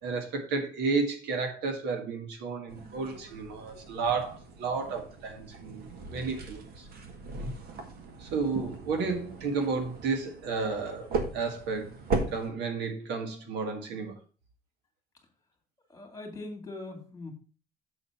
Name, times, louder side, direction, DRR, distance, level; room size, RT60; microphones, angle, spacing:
voice 1, 0.0-5.8 6.1-6.9 8.2-11.9 12.3-14.1, right 4 dB, 85° right, 1.7 m, -32 dB
sound 1, 2.7-12.5, right 3 dB, 65° right, 1.7 m, -38 dB
voice 2, 15.9-17.3, left 2 dB, 20° left, 2.5 m, -41 dB
7.7 x 4.2 x 5.9 m
cardioid pair, 110°, 17 cm